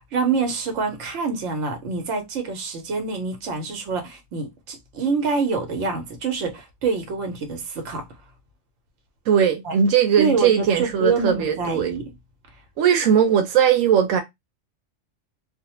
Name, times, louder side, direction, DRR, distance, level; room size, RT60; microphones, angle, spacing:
voice 1, 0.0-8.1 9.6-9.7 10.2-12.0, right 4 dB, 70° right, 1.1 m, -26 dB
voice 2, 9.3-11.9 12.8-14.2, right 8 dB, 90° right, 1.0 m, -19 dB
2.4 x 2.1 x 2.9 m
omnidirectional pair, 1.3 m